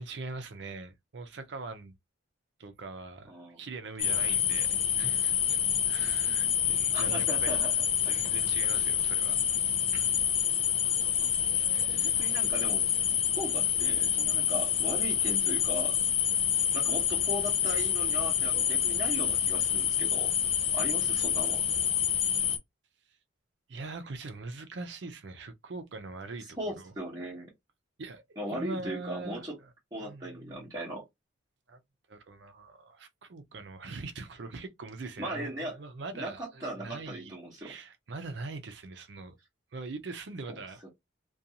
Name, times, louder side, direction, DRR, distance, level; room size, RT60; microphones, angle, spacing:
voice 1, 0.0-1.9 2.6-5.6 5.9-7.6 8.0-9.4 9.9-10.2 11.6-12.1 23.7-26.9 28.0-29.7 30.0-30.7 31.7-31.8 32.1-39.3 39.7-40.8, right 3 dB, 60° right, 0.5 m, -42 dB
voice 2, 3.3-3.6 6.9-8.2 11.2-11.6 11.9-12.9 13.4-16.0 16.7-20.3 20.7-21.7 26.6-27.5 28.4-29.6 29.9-31.0 35.2-35.8 36.1-37.7 40.5-40.6, right 1 dB, 20° right, 0.8 m, -38 dB
sound 1, 4.0-22.6, left 9 dB, 30° left, 0.4 m, -27 dB
2.5 x 2.3 x 2.7 m
head